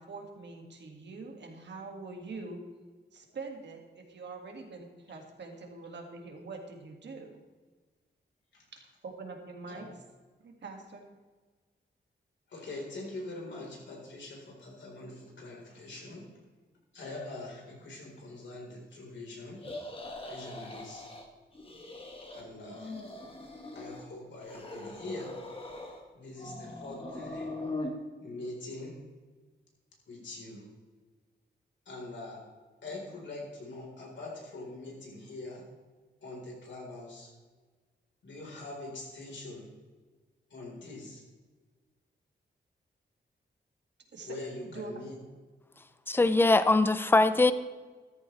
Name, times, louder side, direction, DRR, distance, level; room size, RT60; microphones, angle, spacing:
voice 1, 0.0-2.6 3.1-7.4 8.7-9.9 10.4-11.0 44.1-44.4 44.6-45.0, right 3 dB, 70° right, 2 dB, 2.1 m, -44 dB
voice 2, 12.5-16.2 16.9-19.6 20.3-21.1 22.3-23.0 23.7-25.3 26.1-27.5 28.2-29.0 30.1-30.6 31.9-32.4 32.8-35.6 36.2-37.3 38.2-39.7 40.5-41.2 44.2-45.2, left 2 dB, 85° left, -2 dB, 4.2 m, -43 dB
sound 1, 19.6-21.3 21.5-22.4 22.7-24.1 24.4-26.0 26.4-27.9, left 2 dB, 30° left, 1.6 m, -41 dB
voice 3, 46.1-47.5, left 2 dB, 10° left, 13 dB, 0.5 m, -22 dB
14.0 x 14.0 x 3.3 m, 1.4 s
wide cardioid pair, 175°, 19 cm